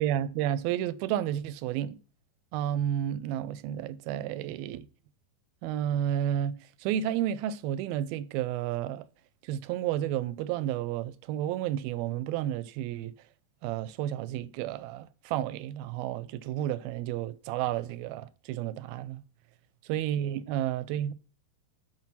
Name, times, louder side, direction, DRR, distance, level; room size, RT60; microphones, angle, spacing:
voice 1, 0.0-2.0 2.5-4.9 5.6-9.0 9.5-13.1 13.6-19.2 19.9-21.1, right 11 dB, 85° right, 2.4 m, -31 dB
7.6 x 5.8 x 5.8 m
omnidirectional pair, 4.3 m